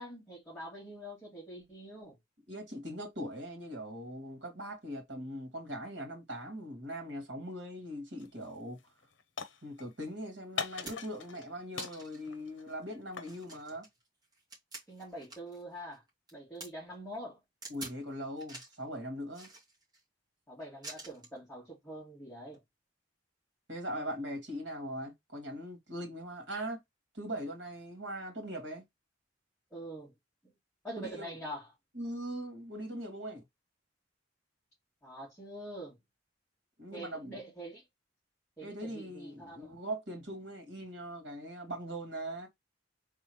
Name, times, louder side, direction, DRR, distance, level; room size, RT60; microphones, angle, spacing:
voice 1, 0.0-2.2 14.9-16.0 16.3-17.4 20.5-22.6 29.7-30.1 30.8-31.7 35.0-36.0 36.9-37.9 38.6-39.7, right 1 dB, 5° left, 2.6 m, -45 dB
voice 2, 2.5-8.8 9.6-13.9 17.7-19.5 23.7-26.8 27.1-28.8 31.0-31.3 32.0-33.4 36.8-37.4 38.6-42.5, equal, 70° right, 2.4 m, -41 dB
sound 1, 8.2-8.5 8.8-10.1 10.6-11.5 11.7-13.4, left 6 dB, 75° left, 0.8 m, -41 dB
sound 2, 10.0-10.1 10.6-11.2 11.8-12.3 12.7-12.8 13.2-15.6 15.9-16.7 17.6-18.0 18.4-18.8 19.3-20.0 20.8-21.4 22.4-22.6, right 2 dB, 20° right, 2.2 m, -47 dB
4.1 x 3.7 x 3.1 m
head